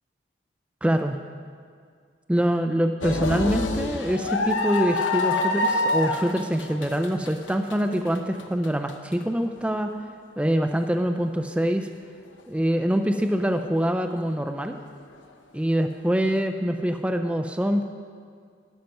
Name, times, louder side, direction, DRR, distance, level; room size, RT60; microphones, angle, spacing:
voice 1, 0.8-1.2 2.3-10.0 10.4-11.9 12.5-14.8 15.5-17.8, equal, 5° right, 6 dB, 0.4 m, -24 dB
sound 1, 3.0-9.1 9.6-9.7 10.9-11.1, left 2 dB, 90° left, 0.9 m, -26 dB
13.0 x 5.8 x 9.1 m, 2.1 s
head